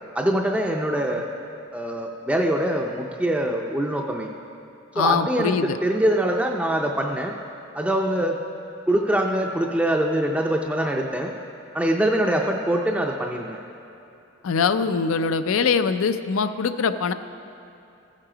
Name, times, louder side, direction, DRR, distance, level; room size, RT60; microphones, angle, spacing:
voice 1, 0.1-1.3 1.7-4.3 5.0-7.3 7.7-8.4 8.9-11.3 11.7-13.6, right 1 dB, 5° right, 0 dB, 0.4 m, -23 dB
voice 2, 4.9-5.8 14.4-17.1, left 5 dB, 80° left, 11 dB, 0.4 m, -22 dB
15.0 x 7.5 x 5.0 m, 2.7 s
head